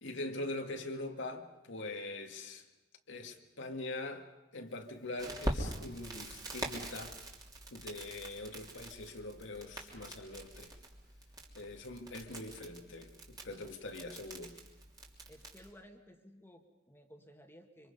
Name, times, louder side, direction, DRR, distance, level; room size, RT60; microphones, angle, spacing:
voice 1, 0.0-2.6 3.1-4.2 4.5-7.2 7.7-10.7 11.6-14.5, left 2 dB, 80° left, 2.1 m, -43 dB
Crackle, 5.2-15.7, right 1 dB, 20° right, 3.0 m, -44 dB
voice 2, 15.3-17.9, equal, 15° left, 2.0 m, -57 dB
26.0 x 25.5 x 5.5 m
head